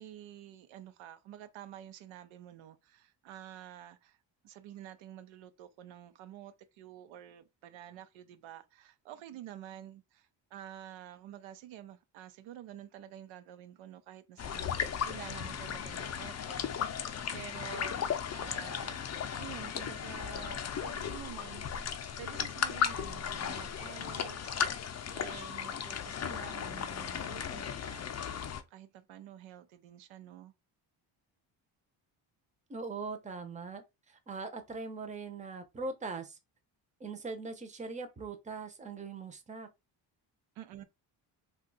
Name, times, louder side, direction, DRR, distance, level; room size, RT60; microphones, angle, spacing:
voice 1, 0.0-4.2 4.4-21.9 22.2-28.4 28.7-30.5 40.6-40.8, right 11 dB, 85° right, 0.6 m, -49 dB
sound 1, 14.4-28.6, left 8 dB, 35° left, 0.5 m, -36 dB
voice 2, 32.7-36.4 37.0-39.7, right 4 dB, 15° right, 0.6 m, -41 dB
2.7 x 2.4 x 3.8 m
cardioid pair, 90°, 47 cm